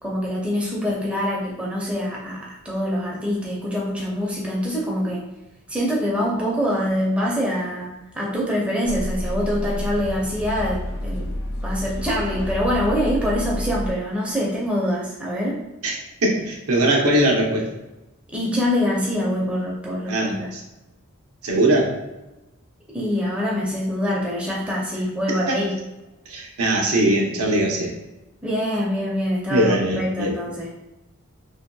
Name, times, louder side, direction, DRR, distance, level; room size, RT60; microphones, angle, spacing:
voice 1, 0.0-5.2 5.7-11.3 11.6-15.6 18.3-20.5 22.9-25.7 28.4-30.7, equal, 5° right, -5 dB, 0.4 m, -25 dB
sound 1, 8.8-13.9, left 1 dB, 80° left, 0.4 m, -29 dB
voice 2, 16.2-17.7 20.1-20.6 21.4-21.9 25.5-25.6 26.3-27.9 29.5-30.3, right 1 dB, 80° right, -1 dB, 0.7 m, -20 dB
2.9 x 2.7 x 2.2 m, 0.98 s
head